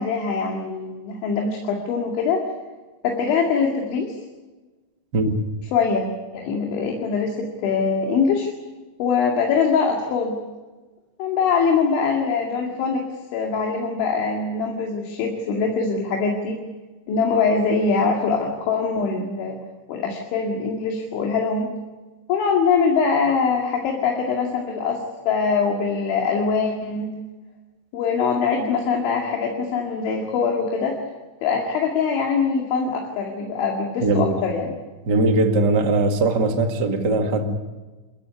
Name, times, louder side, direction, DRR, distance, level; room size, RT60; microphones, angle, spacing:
voice 1, 0.0-2.4 3.0-4.2 5.7-8.5 9.0-10.4 11.2-13.1 13.3-16.6 17.1-19.6 19.9-21.7 22.3-27.1 27.9-31.0 31.4-34.7, left 5 dB, 80° left, 4.7 m, -23 dB
voice 2, 5.1-5.4 34.0-34.4 35.0-37.5, right 2 dB, 50° right, 1.2 m, -20 dB
29.0 x 15.5 x 9.7 m
omnidirectional pair, 5.3 m